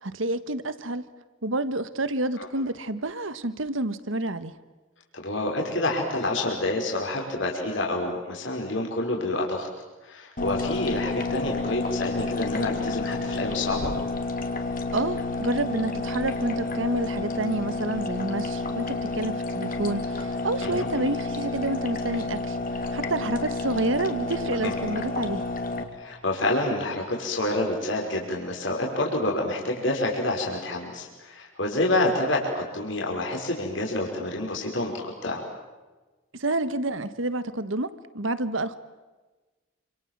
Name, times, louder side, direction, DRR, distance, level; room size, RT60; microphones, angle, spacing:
voice 1, 0.0-1.0 1.4-4.6 14.9-22.6 22.9-25.4 36.3-38.8, right 2 dB, 75° right, 13 dB, 1.5 m, -29 dB
voice 2, 5.1-9.7 10.0-13.9 20.6-20.9 24.6-24.8 26.0-34.9 35.2-35.4, left 2 dB, 70° left, -1 dB, 5.5 m, -28 dB
sound 1, 10.4-25.8, left 3 dB, 45° left, 2.9 m, -30 dB
29.0 x 27.0 x 7.5 m, 1.2 s
head